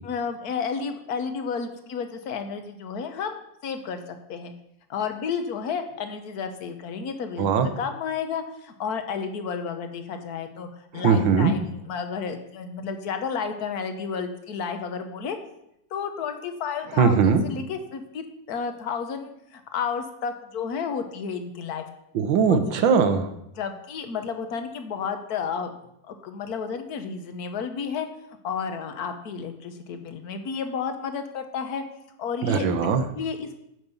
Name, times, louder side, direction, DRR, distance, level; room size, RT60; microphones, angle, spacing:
voice 1, 0.0-4.0 4.3-4.5 4.9-10.7 10.9-15.4 15.9-21.8 22.5-22.9 23.6-25.7 26.0-28.1 28.4-31.8 32.2-32.7 33.1-33.5, left 6 dB, 60° left, 7 dB, 1.4 m, -31 dB
voice 2, 7.4-7.7 10.9-11.5 17.0-17.4 22.1-23.3 32.4-33.0, right 6 dB, 85° right, 8 dB, 1.7 m, -20 dB
9.2 x 5.4 x 6.9 m, 0.81 s
omnidirectional pair, 2.0 m